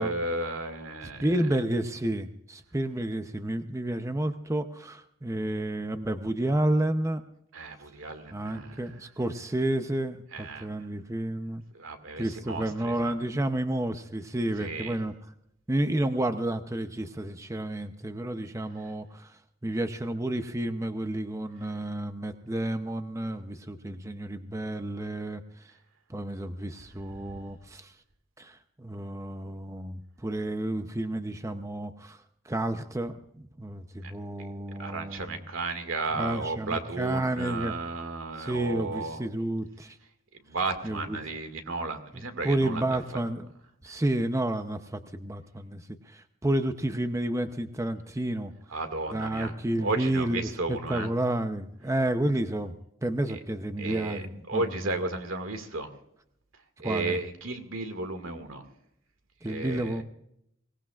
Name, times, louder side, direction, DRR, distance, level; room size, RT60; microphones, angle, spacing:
voice 1, 0.0-1.3 7.5-8.9 10.3-10.9 11.7-13.2 14.6-15.0 34.0-34.1 34.8-39.2 40.5-43.0 43.9-44.0 48.7-49.5 49.8-51.1 53.3-53.4 53.8-55.9 56.8-58.6 59.4-60.0, right 3 dB, 85° right, 7 dB, 2.0 m, -34 dB
voice 2, 1.2-7.2 8.3-11.6 12.2-15.1 15.7-25.7 26.1-27.9 28.4-35.4 36.1-37.7 38.4-40.0 40.8-41.2 42.1-43.5 43.8-48.5 49.1-52.7 53.0-54.9 56.8-57.2 59.4-60.0, right 1 dB, 15° right, 8 dB, 0.6 m, -31 dB
24.0 x 18.0 x 2.4 m, 0.75 s
head